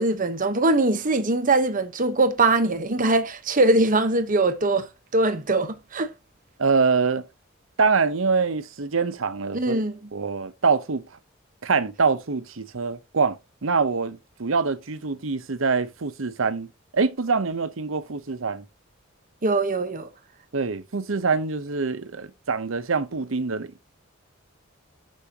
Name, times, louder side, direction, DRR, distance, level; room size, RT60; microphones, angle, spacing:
voice 1, 0.0-6.1 9.5-10.0 19.4-20.1, right 2 dB, 45° right, 1.1 m, -22 dB
voice 2, 6.6-7.2 7.8-9.8 10.1-11.1 11.6-16.7 16.9-18.6 20.5-23.8, right 4 dB, 75° right, 0.8 m, -24 dB
8.4 x 6.3 x 2.9 m
head